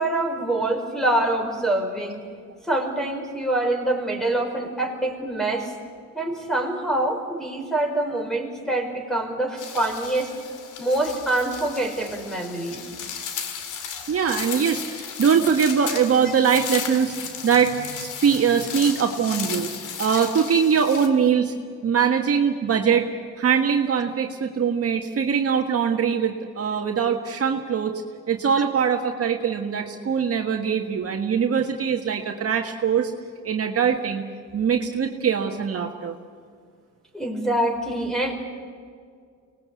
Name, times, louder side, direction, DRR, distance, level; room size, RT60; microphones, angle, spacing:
voice 1, 0.0-2.2 2.6-5.7 6.1-10.3 10.8-12.8 37.1-38.3, right 1 dB, ahead, 3 dB, 5.2 m, -25 dB
sound 1, 9.6-21.1, left 7 dB, 90° left, 2.5 m, -35 dB
voice 2, 14.1-17.1 17.4-19.7 20.0-21.5 21.8-23.1 23.4-28.0 28.3-33.1 33.4-34.2 34.5-36.2, right 7 dB, 50° right, 3 dB, 1.7 m, -22 dB
25.0 x 19.5 x 8.5 m, 2.1 s
cardioid pair, 90°, 30 cm